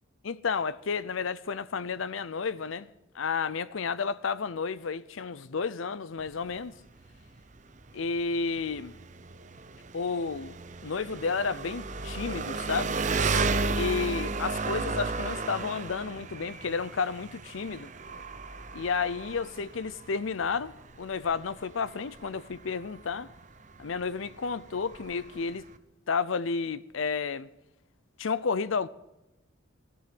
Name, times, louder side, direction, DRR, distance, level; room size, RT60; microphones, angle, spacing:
voice 1, 0.2-2.9 3.1-6.7 7.9-8.9 9.9-10.6 10.8-13.0 13.8-17.9 18.7-20.7 21.0-23.3 23.8-25.6 26.1-27.5 28.2-28.9, left 5 dB, 80° left, 0.6 m, -31 dB
Engine, 6.2-25.8, right 4 dB, 35° right, 0.8 m, -34 dB
17.5 x 14.0 x 6.0 m
head